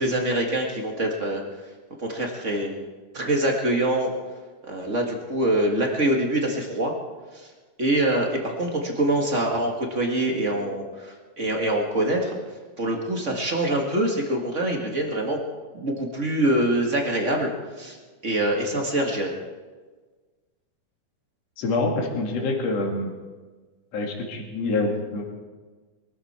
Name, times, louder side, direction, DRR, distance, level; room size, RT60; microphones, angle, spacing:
voice 1, 0.0-1.7 2.0-2.9 3.1-4.1 4.6-6.9 7.3-7.5 7.8-12.4 12.8-15.4 15.7-18.0 18.2-19.3, right 1 dB, 30° right, 1 dB, 1.5 m, -25 dB
voice 2, 21.6-23.1 23.9-25.2, left 3 dB, 55° left, 0 dB, 3.1 m, -26 dB
23.0 x 13.5 x 4.3 m, 1.4 s
omnidirectional pair, 3.7 m